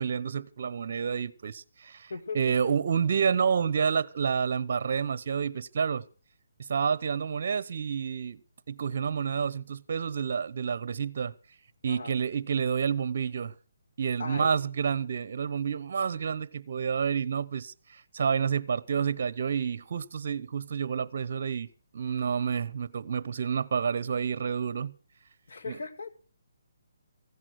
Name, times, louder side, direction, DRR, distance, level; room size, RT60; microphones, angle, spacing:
voice 1, 0.0-6.0 6.6-8.4 8.7-11.3 11.8-13.5 14.0-21.7 21.9-24.9 25.7-25.8, right 6 dB, 45° right, 0.8 m, -29 dB
voice 2, 2.1-2.7 11.8-12.2 14.2-14.6 25.5-26.1, left 4 dB, 60° left, 2.2 m, -38 dB
15.5 x 10.5 x 6.4 m
hypercardioid pair, 170°, 0 cm